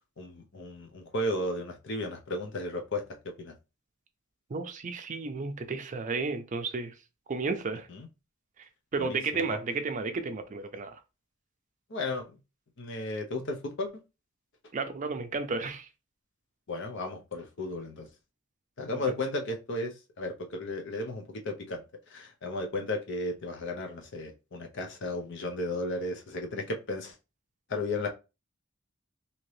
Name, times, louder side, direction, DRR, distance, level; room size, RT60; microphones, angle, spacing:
voice 1, 0.2-3.0 3.4-3.5 7.9-8.1 9.0-9.6 11.9-12.3 12.8-13.9 16.7-18.1 18.8-27.2 27.7-28.1, left 2 dB, 60° left, 0.7 m, -34 dB
voice 2, 4.5-6.9 7.3-7.9 8.9-11.0 14.7-15.9, right 4 dB, 35° right, 0.4 m, -32 dB
2.8 x 2.7 x 3.1 m
head